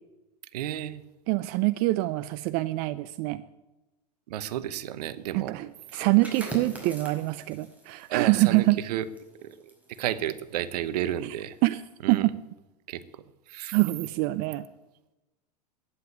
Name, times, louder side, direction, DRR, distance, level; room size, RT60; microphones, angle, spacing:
voice 1, 0.5-1.0 4.3-5.5 8.1-9.1 9.4-9.6 9.9-11.5 12.0-12.3 12.9-13.0 13.5-13.7, right 11 dB, 70° right, 15 dB, 1.0 m, -31 dB
voice 2, 1.3-3.4 5.3-8.8 11.6-11.8 12.1-12.3 13.7-14.6, right 20 dB, 50° right, 14 dB, 0.6 m, -25 dB
sound 1, 5.8-11.3 11.6-11.9, right 1 dB, 5° right, 5.3 m, -44 dB
11.5 x 9.9 x 9.6 m, 1.0 s
hypercardioid pair, 100°, 21 cm